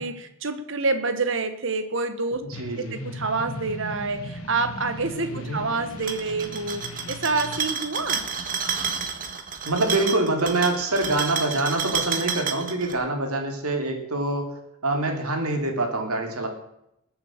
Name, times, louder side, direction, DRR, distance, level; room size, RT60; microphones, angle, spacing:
voice 1, 0.0-2.4 2.9-8.3, right 3 dB, 55° right, 8 dB, 1.4 m, -27 dB
sound 1, 2.5-7.6, left 1 dB, 75° left, 1.7 m, -38 dB
voice 2, 2.6-3.0 5.3-5.6 9.7-14.5 14.8-16.5, right 2 dB, 85° right, 3 dB, 3.2 m, -25 dB
sound 2, 5.9-12.9, right 6 dB, 40° right, 1.6 m, -30 dB
21.0 x 7.9 x 6.5 m, 0.81 s
head